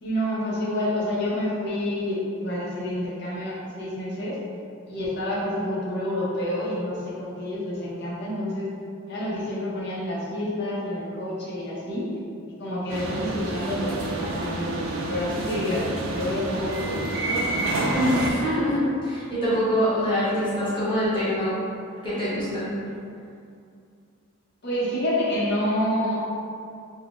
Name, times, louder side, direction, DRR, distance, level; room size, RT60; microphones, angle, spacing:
voice 1, 0.0-4.4 4.9-8.7 9.1-12.1 12.6-18.4 24.6-26.3, left 1 dB, 50° left, -6 dB, 0.6 m, -28 dB
sound 1, 12.9-18.3, right 2 dB, 70° right, 0.3 m, -29 dB
voice 2, 17.9-21.6 22.0-22.8, equal, 20° left, -11 dB, 0.8 m, -24 dB
2.4 x 2.0 x 3.6 m, 2.4 s
head